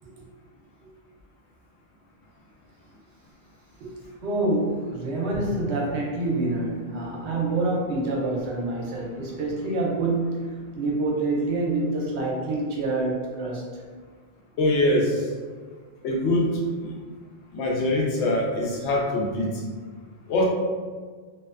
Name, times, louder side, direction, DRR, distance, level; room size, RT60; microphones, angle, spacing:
voice 1, 4.2-13.8, right 2 dB, 85° right, -3 dB, 0.9 m, -27 dB
voice 2, 14.6-15.2 16.0-16.5 16.8-16.9 17.5-19.6 20.3-20.4, left 1 dB, 85° left, -1 dB, 0.9 m, -23 dB
2.5 x 2.1 x 2.3 m, 1.5 s
omnidirectional pair, 1.1 m